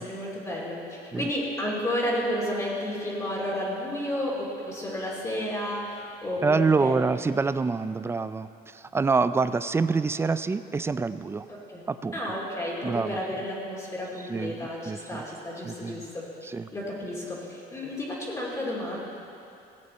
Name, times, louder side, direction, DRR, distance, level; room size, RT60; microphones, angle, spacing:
voice 1, 0.0-7.1 11.5-11.8 12.1-16.3 16.7-19.0, left 1 dB, 20° left, -6 dB, 2.4 m, -32 dB
voice 2, 6.4-11.5 11.9-12.1 12.8-13.2 14.3-15.2 15.6-16.0 16.5-16.7, right 4 dB, 15° right, 13 dB, 0.3 m, -26 dB
17.0 x 8.2 x 4.3 m, 2.6 s
cardioid pair, 110°, 17 cm